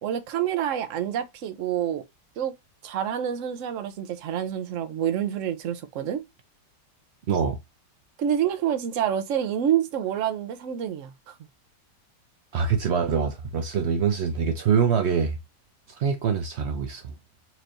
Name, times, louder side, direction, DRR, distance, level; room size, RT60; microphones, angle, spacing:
voice 1, 0.0-2.0 2.4-2.5 2.8-6.2 8.2-11.3, right 9 dB, 60° right, 0.9 m, -27 dB
voice 2, 7.3-7.6 12.5-15.4 16.0-17.1, right 6 dB, 80° right, 0.6 m, -24 dB
4.5 x 3.0 x 2.5 m
omnidirectional pair, 1.8 m